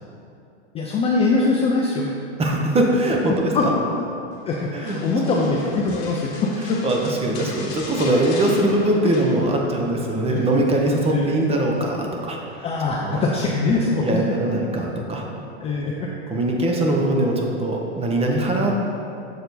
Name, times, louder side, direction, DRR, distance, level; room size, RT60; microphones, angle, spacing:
voice 1, 0.7-2.1 3.5-3.7 4.4-6.8 9.7-9.8 10.3-10.4 11.1-11.3 12.6-14.4 15.6-16.1, left 3 dB, 20° left, -3 dB, 0.4 m, -22 dB
voice 2, 2.4-3.7 4.7-5.0 5.3-5.5 6.8-12.4 13.0-13.2 14.0-15.2 16.3-18.7, right 1 dB, 15° right, 0 dB, 0.7 m, -21 dB
sound 1, 4.9-9.9 10.1-10.5 10.9-12.0 13.1-13.6 14.1-14.2, left 3 dB, 45° left, 1.2 m, -39 dB
6.8 x 4.3 x 4.0 m, 2.6 s
hypercardioid pair, 120°, 35 cm